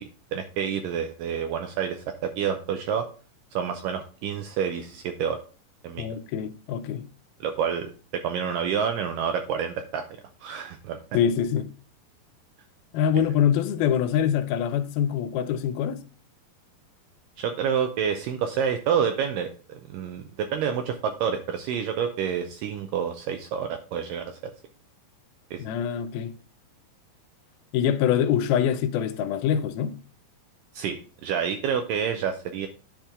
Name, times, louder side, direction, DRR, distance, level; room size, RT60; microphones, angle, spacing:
voice 1, 0.0-3.1 3.5-5.4 5.8-6.1 7.4-10.0 10.4-11.0 13.1-13.3 17.4-24.4 25.5-25.6 30.7-32.7, right 7 dB, 80° right, 2.1 m, -28 dB
voice 2, 6.0-7.1 11.1-11.7 12.9-16.0 25.6-26.3 27.7-30.0, left 9 dB, 80° left, 2.5 m, -24 dB
10.0 x 4.5 x 3.6 m
omnidirectional pair, 4.3 m